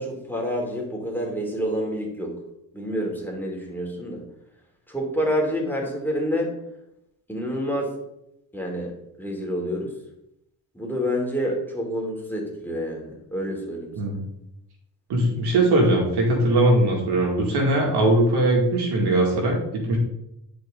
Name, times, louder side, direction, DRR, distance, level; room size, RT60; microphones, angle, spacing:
voice 1, 0.0-2.4 2.7-4.2 4.9-6.5 7.3-7.9 8.5-9.9 10.7-14.2, equal, 5° left, -1 dB, 3.1 m, -28 dB
voice 2, 15.1-20.0, right 1 dB, 70° right, 0 dB, 2.3 m, -20 dB
10.5 x 4.8 x 3.8 m, 0.81 s
supercardioid pair, 65°, 40 cm